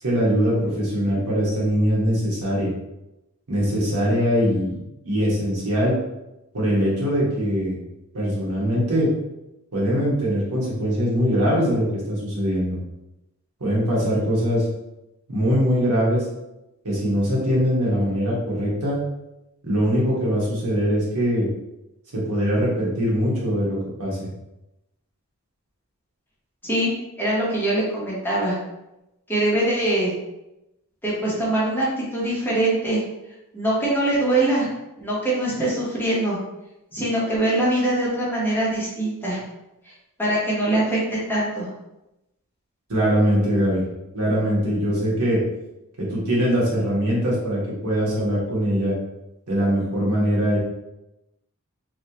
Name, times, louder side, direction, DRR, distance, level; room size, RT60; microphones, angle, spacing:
voice 1, 0.0-2.7 3.5-4.8 5.0-5.9 6.5-7.8 8.1-9.1 9.7-12.8 13.6-14.6 15.3-16.2 16.8-19.0 19.6-21.5 22.1-24.2 42.9-43.8 44.1-45.4 46.0-48.9 49.5-50.6, equal, 85° right, -5 dB, 1.3 m, -22 dB
voice 2, 27.2-28.6 29.3-30.1 31.0-33.0 33.5-34.7 35.0-36.4 36.9-39.4 39.9-40.0 40.2-41.7, right 1 dB, 10° left, -7 dB, 1.0 m, -23 dB
3.2 x 2.8 x 2.8 m, 0.93 s
head